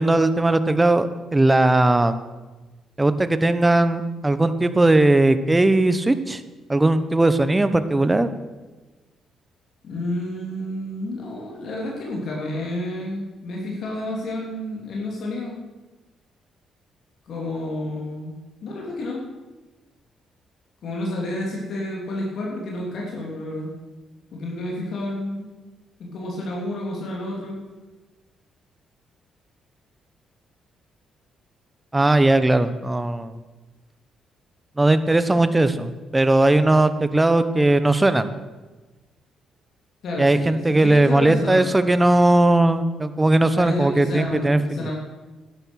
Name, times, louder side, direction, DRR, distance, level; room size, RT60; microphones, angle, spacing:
voice 1, 0.0-2.2 3.0-6.4 6.7-8.3 31.9-33.4 34.8-38.3 40.2-44.9, right 2 dB, 15° right, 12 dB, 0.9 m, -18 dB
voice 2, 9.8-15.5 17.3-18.3 18.6-19.2 20.8-23.7 24.3-25.5 26.0-27.6 40.0-41.7 43.5-44.9, left 1 dB, 65° left, -2 dB, 3.3 m, -30 dB
12.0 x 11.0 x 6.4 m, 1.2 s
cardioid pair, 90°, 0 cm